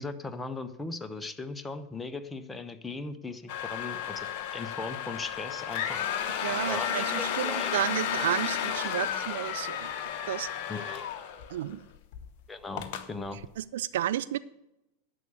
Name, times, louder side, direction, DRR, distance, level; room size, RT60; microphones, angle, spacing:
voice 1, 0.0-4.3 4.5-6.0 6.4-7.8 8.4-8.9 10.7-11.0 12.5-13.4, left 3 dB, 10° left, 9 dB, 0.9 m, -38 dB
sound 1, 3.5-11.7 12.1-12.3 12.8-13.1, left 9 dB, 45° left, 0.9 m, -33 dB
voice 2, 6.4-9.9 10.3-10.5 11.5-11.8 13.6-14.4, right 12 dB, 55° right, 15 dB, 0.3 m, -32 dB
11.0 x 6.9 x 8.1 m, 0.89 s
figure-of-eight pair, 90°, 0 cm